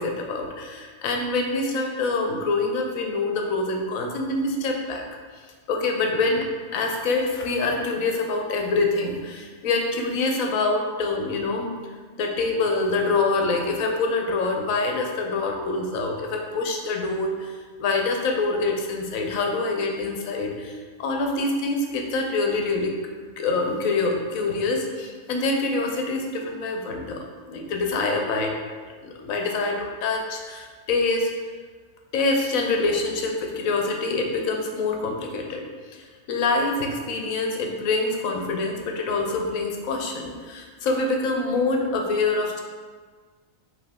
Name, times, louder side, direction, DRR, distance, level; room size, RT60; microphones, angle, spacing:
voice 1, 0.0-5.0 5.7-6.5 6.7-11.8 12.2-17.5 17.8-23.0 23.4-28.5 29.0-31.3 32.1-35.6 35.9-42.6, left 3 dB, 75° left, 2 dB, 1.1 m, -25 dB
4.9 x 2.9 x 3.5 m, 1.5 s
omnidirectional pair, 1.5 m